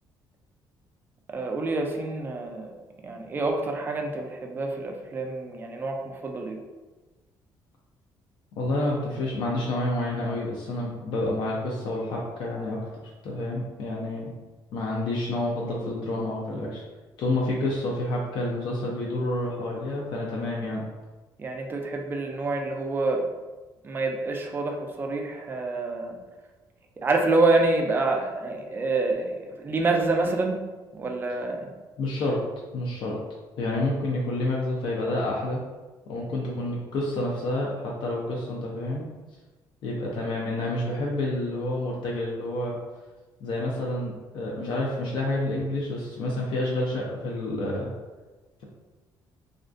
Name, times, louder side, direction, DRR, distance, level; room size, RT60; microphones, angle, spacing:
voice 1, 1.3-2.7 3.0-6.6 21.4-23.2 23.8-26.2 27.0-30.6 30.9-31.7, right 3 dB, 25° right, 2 dB, 0.3 m, -27 dB
voice 2, 8.6-14.3 14.7-16.8 17.2-20.9 31.3-31.4 32.0-32.4 32.7-33.2 33.6-35.6 36.1-39.1 39.8-42.8 43.4-47.9, left 1 dB, 65° left, -3 dB, 0.4 m, -29 dB
2.4 x 2.2 x 2.5 m, 1.2 s
cardioid pair, 130°, 8 cm